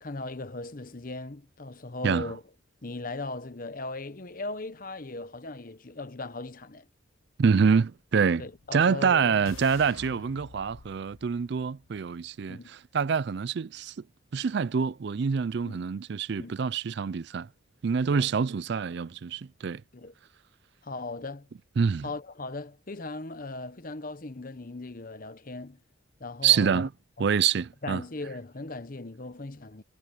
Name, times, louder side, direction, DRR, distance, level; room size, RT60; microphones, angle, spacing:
voice 1, 0.0-2.4 2.8-6.8 8.4-9.4 12.5-12.7 15.6-15.8 16.4-16.6 18.1-18.2 19.9-20.1 20.8-21.5 22.0-25.8 26.2-26.8 27.2-27.3 27.8-29.8, left 2 dB, 45° left, 1.0 m, -38 dB
voice 2, 7.4-8.4 8.7-13.9 14.3-17.5 17.8-19.8 21.8-22.1 26.4-26.9 27.2-28.0, right 6 dB, 55° right, 0.4 m, -26 dB
sound 1, 8.5-12.5, left 4 dB, 85° left, 0.9 m, -50 dB
head